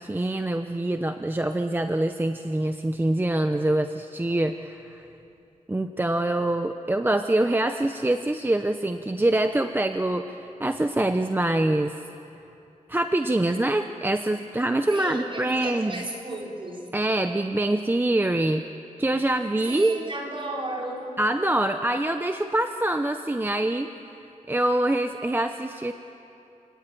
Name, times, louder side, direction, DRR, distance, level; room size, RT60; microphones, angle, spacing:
voice 1, 0.0-5.0 5.7-12.0 12.9-16.0 16.9-18.6 19.0-20.0 21.2-23.9 24.5-25.9, right 1 dB, 15° right, 7 dB, 0.8 m, -25 dB
voice 2, 14.9-16.9 19.7-21.2, right 1 dB, 40° right, -1 dB, 4.6 m, -34 dB
28.5 x 19.0 x 9.3 m, 2.8 s
wide cardioid pair, 115°, 14 cm